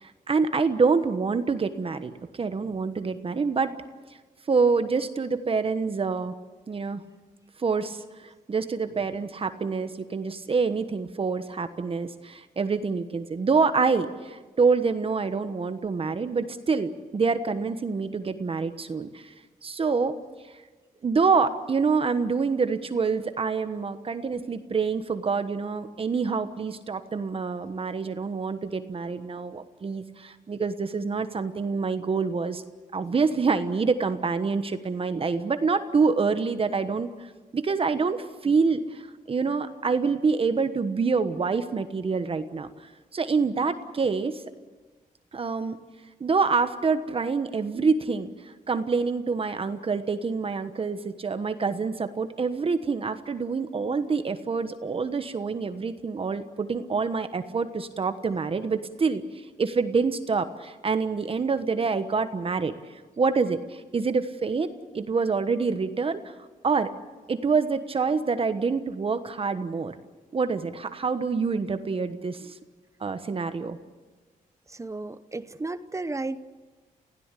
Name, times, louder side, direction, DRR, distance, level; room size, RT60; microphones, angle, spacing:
voice 1, 0.0-3.7 4.5-6.3 6.7-7.0 7.6-19.3 19.6-20.1 21.0-32.6 32.9-42.7 43.1-44.4 45.3-45.8 46.2-59.2 59.6-62.7 63.2-66.3 66.6-66.9 67.3-69.9 70.3-72.6 73.0-73.8, right 4 dB, 40° right, 10 dB, 1.2 m, -26 dB
voice 2, 74.7-76.4, right 2 dB, 20° right, 13 dB, 0.8 m, -33 dB
29.0 x 16.0 x 8.4 m, 1.3 s
wide cardioid pair, 115°, 15 cm